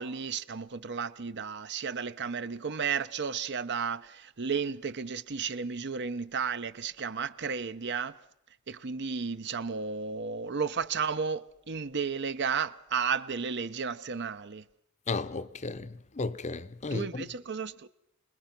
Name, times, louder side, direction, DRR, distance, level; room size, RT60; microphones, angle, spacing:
voice 1, 0.0-8.2 8.7-14.6 16.9-17.9, right 6 dB, 55° right, 0.8 m, -33 dB
voice 2, 15.1-17.2, left 3 dB, 35° left, 0.7 m, -34 dB
27.0 x 20.5 x 6.0 m
head